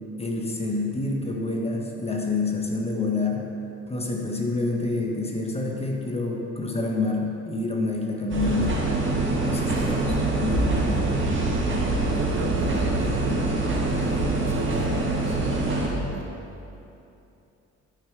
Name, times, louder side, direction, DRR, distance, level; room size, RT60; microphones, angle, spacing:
voice 1, 0.2-3.5 3.9-8.8 9.4-11.1, left 3 dB, 20° left, 0 dB, 1.4 m, -28 dB
sound 1, 8.3-15.9, right 2 dB, 40° right, 1.8 m, -24 dB
voice 2, 9.6-10.1 12.1-13.2 13.8-16.3, right 3 dB, 60° right, 0 dB, 1.3 m, -35 dB
11.5 x 5.6 x 4.8 m, 2.8 s
cardioid pair, 90°, 30 cm